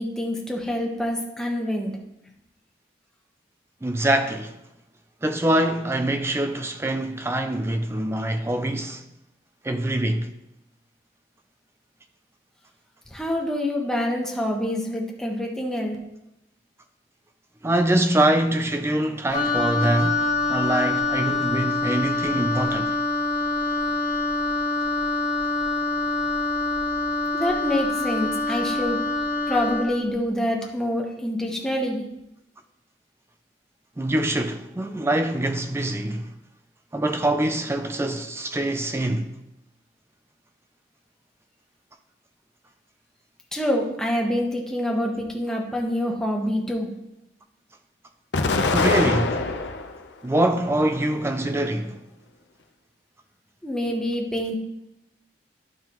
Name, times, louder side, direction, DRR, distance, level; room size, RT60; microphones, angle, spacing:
voice 1, 0.0-1.9 13.1-16.0 27.3-29.0 29.5-32.0 43.5-46.9 53.6-54.6, left 1 dB, 5° left, 1.1 m, -26 dB
voice 2, 3.8-4.6 5.2-9.0 9.6-10.3 17.6-20.2 20.5-23.0 34.0-36.3 36.9-39.3 48.7-49.4 50.2-52.0, right 1 dB, 15° right, 0.4 m, -24 dB
Wind instrument woodwind instrument, 19.3-29.9, left 2 dB, 55° left, 1.4 m, -25 dB
Explosion, 48.3-50.0 50.5-51.4, left 3 dB, 75° left, 0.6 m, -24 dB
11.5 x 5.6 x 3.0 m
head